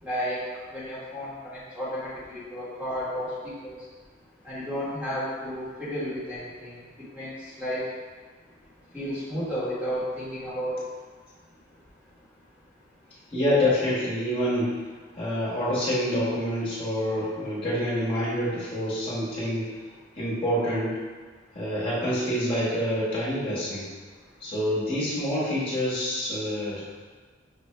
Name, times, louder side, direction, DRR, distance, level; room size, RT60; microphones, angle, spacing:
voice 1, 0.0-0.4 0.7-3.3 3.6-3.8 4.4-6.7 7.1-7.3 7.6-7.9 8.9-10.7, equal, 5° right, -10 dB, 1.2 m, -32 dB
voice 2, 13.3-14.7 15.1-19.6 20.2-20.9 21.5-23.9 24.4-26.9, equal, 30° left, -9 dB, 1.2 m, -27 dB
5.7 x 2.6 x 3.2 m, 1.5 s
head